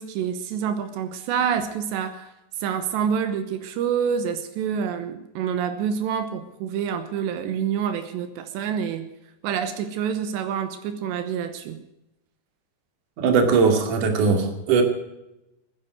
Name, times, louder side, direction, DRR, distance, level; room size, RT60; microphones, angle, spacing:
voice 1, 0.0-2.3 2.6-9.1 9.4-11.8, right 7 dB, 85° right, 9 dB, 3.3 m, -27 dB
voice 2, 13.2-14.8, right 5 dB, 50° right, 5 dB, 3.5 m, -19 dB
21.5 x 10.0 x 6.3 m, 0.90 s
omnidirectional pair, 5.0 m